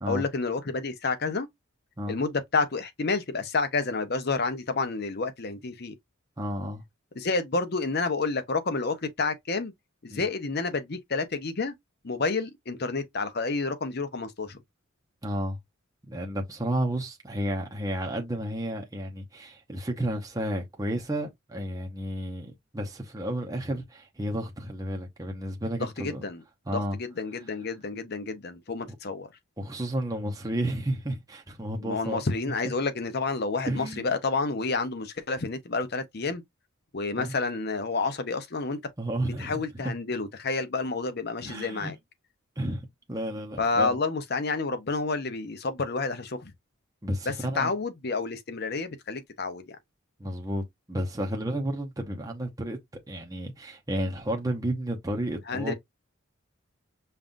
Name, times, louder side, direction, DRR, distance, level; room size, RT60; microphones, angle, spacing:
voice 1, 0.1-1.5 2.1-5.9 7.2-9.7 10.0-11.7 12.0-14.6 25.8-26.4 26.7-29.3 31.8-36.4 36.9-38.8 39.4-41.9 43.6-46.5 47.3-49.8 55.5-55.7, left 3 dB, 50° left, 0.7 m, -29 dB
voice 2, 6.4-6.8 10.1-10.3 15.2-15.6 16.1-26.3 26.7-27.0 28.9-29.0 29.6-32.2 33.6-34.1 37.1-37.3 39.0-39.9 41.4-41.9 42.6-42.8 43.1-44.0 47.0-47.7 50.2-52.8 53.1-55.7, right 1 dB, 15° right, 0.8 m, -32 dB
5.4 x 2.5 x 2.5 m
head